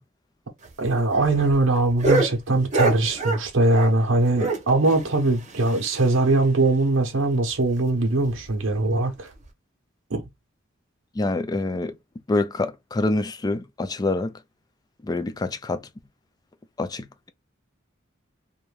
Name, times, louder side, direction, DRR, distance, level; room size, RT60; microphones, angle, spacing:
sound 1, 0.6-4.1 4.3-6.3 6.6-6.7 7.0-7.1 7.5-7.6 8.2-8.5 9.3-9.4, right 2 dB, 35° right, 0.8 m, -27 dB
voice 1, 0.8-9.3 10.1-10.3, right 2 dB, 70° right, 0.7 m, -21 dB
voice 2, 11.2-12.0 12.3-14.4 15.0-15.8 16.8-17.3, left 2 dB, 20° left, 0.3 m, -26 dB
2.5 x 2.2 x 3.2 m
head